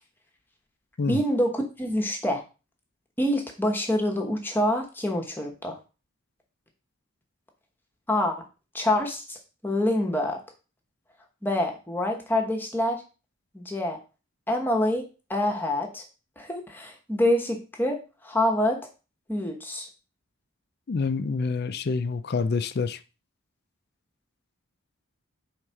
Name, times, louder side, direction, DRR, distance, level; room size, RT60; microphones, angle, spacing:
voice 1, 1.1-2.4 3.2-5.8 8.1-8.4 8.7-9.4 9.6-10.4 11.4-13.0 13.5-14.0 14.5-15.0 15.3-16.0 16.4-18.0 18.2-18.8 19.3-19.9, left 1 dB, 10° left, 1.0 m, -26 dB
voice 2, 20.9-23.0, left 4 dB, 45° left, 0.4 m, -27 dB
4.8 x 3.6 x 5.6 m
head